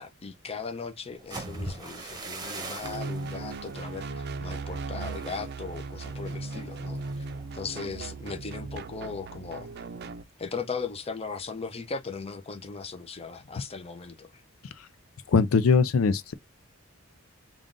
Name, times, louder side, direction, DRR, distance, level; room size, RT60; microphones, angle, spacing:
voice 1, 0.0-7.3 7.5-9.7 10.4-14.4, left 4 dB, 30° left, 0.6 m, -38 dB
sound 1, 1.1-9.0 9.4-9.7 10.0-10.5, right 2 dB, 20° right, 0.9 m, -43 dB
sound 2, 2.8-10.2, right 3 dB, 50° right, 0.5 m, -37 dB
voice 2, 15.3-16.3, left 5 dB, 80° left, 0.5 m, -21 dB
3.7 x 2.4 x 3.7 m
head